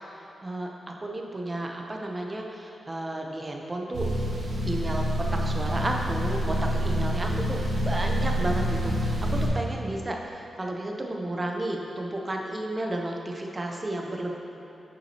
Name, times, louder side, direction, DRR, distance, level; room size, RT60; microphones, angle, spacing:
voice 1, 0.1-4.1 4.7-5.0 5.3-9.2 9.5-14.3, right 1 dB, 20° right, 1 dB, 0.6 m, -32 dB
sound 1, 3.9-9.5, equal, 70° right, 1.1 m, -27 dB
8.1 x 6.0 x 2.8 m, 3.0 s
wide cardioid pair, 130°, 0 cm